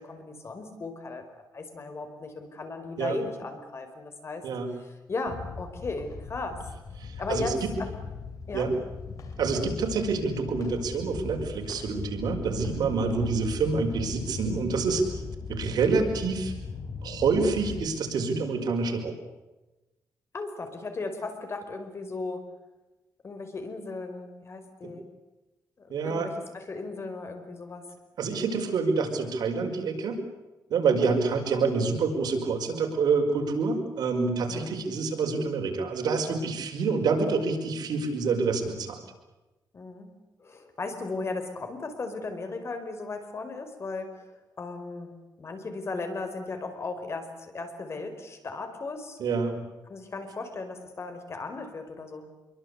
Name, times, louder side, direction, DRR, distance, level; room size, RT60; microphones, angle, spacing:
voice 1, 0.0-4.4 4.8-6.6 7.2-7.9 8.5-8.7 13.1-13.3 20.3-22.4 23.2-25.1 25.8-27.9 30.9-31.1 34.5-34.7 39.7-40.1 40.4-44.3 44.6-45.1 45.4-49.2 49.9-52.3, left 3 dB, 40° left, 7 dB, 5.1 m, -36 dB
sound 1, 5.3-17.9, left 5 dB, 55° left, 4.2 m, -39 dB
voice 2, 7.0-7.7 8.5-8.7 9.4-15.0 15.5-16.5 17.0-19.2 24.8-25.0 25.9-26.3 28.2-30.2 30.7-39.0 49.2-49.6, right 4 dB, 80° right, 3 dB, 5.4 m, -27 dB
26.0 x 23.5 x 8.3 m, 1.1 s
cardioid pair, 120°, 7 cm